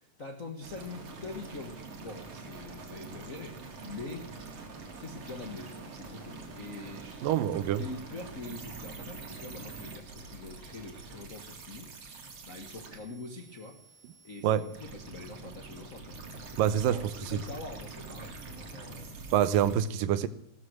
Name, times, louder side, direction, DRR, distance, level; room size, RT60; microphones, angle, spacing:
voice 1, 0.0-4.3 5.0-7.3 7.7-14.0 14.2-16.2 16.5-19.1, left 2 dB, 50° left, 0.9 m, -44 dB
sound 1, 0.6-19.8, right 3 dB, 45° right, 3.0 m, -45 dB
voice 2, 7.2-7.8 14.4-14.6 16.6-17.0 17.3-17.4 19.3-20.3, right 10 dB, 90° right, 2.6 m, -26 dB
16.5 x 13.0 x 6.2 m
omnidirectional pair, 3.8 m